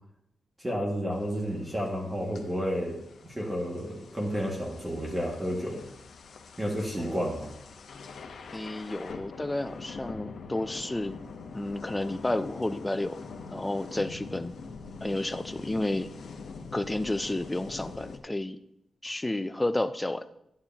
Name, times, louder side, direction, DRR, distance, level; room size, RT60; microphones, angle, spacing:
voice 1, 0.6-3.0 3.3-5.9 6.6-7.5, equal, 15° right, -1 dB, 2.0 m, -31 dB
sound 1, 1.1-18.2, left 4 dB, 70° left, 1.0 m, -44 dB
voice 2, 8.5-11.2 11.5-13.2 13.5-14.6 15.0-16.1 16.7-18.6 19.0-20.3, left 1 dB, 15° left, 10 dB, 0.5 m, -31 dB
11.5 x 9.6 x 2.9 m, 0.79 s
wide cardioid pair, 130°, 0 cm